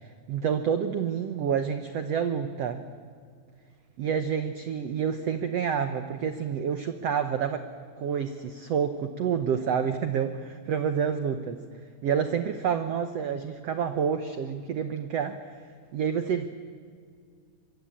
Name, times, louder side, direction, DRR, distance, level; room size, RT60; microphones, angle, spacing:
voice 1, 0.0-2.8 4.0-7.7 8.0-11.6 12.0-16.5, right 7 dB, 85° right, 9 dB, 1.4 m, -28 dB
25.0 x 23.5 x 8.6 m, 2.1 s
omnidirectional pair, 4.4 m